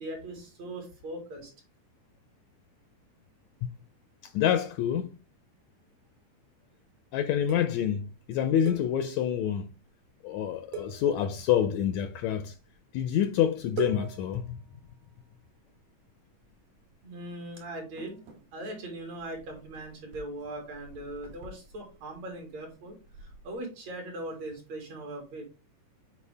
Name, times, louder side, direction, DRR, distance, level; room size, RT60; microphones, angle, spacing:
voice 1, 0.0-1.5 17.0-18.2 18.5-25.4, right 1 dB, 60° right, 3.3 m, -40 dB
voice 2, 4.3-5.1 7.1-9.7 10.2-12.5 12.9-14.6, left 9 dB, 80° left, 1.7 m, -27 dB
sound 1, 7.5-9.4 9.8-10.0 10.3-10.4 10.7-11.8 12.5-13.1 13.3-13.4 13.8-15.8 16.4-17.0 17.3-23.6, right 4 dB, 80° right, 2.9 m, -44 dB
8.2 x 4.8 x 3.4 m
omnidirectional pair, 3.7 m